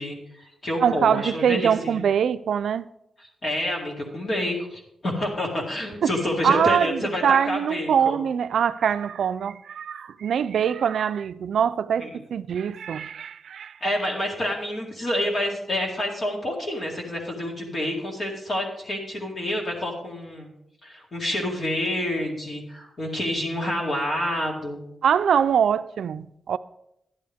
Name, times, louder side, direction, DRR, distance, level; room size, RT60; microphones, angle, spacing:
voice 1, 0.0-2.0 3.4-8.2 12.0-12.1 13.8-20.5 20.8-24.8, left 1 dB, 40° left, 2.1 m, -28 dB
voice 2, 0.8-2.9 6.0-6.1 6.4-13.8 25.0-26.6, right 8 dB, 80° right, 0.4 m, -23 dB
11.0 x 10.5 x 3.5 m
wide cardioid pair, 175°, 0 cm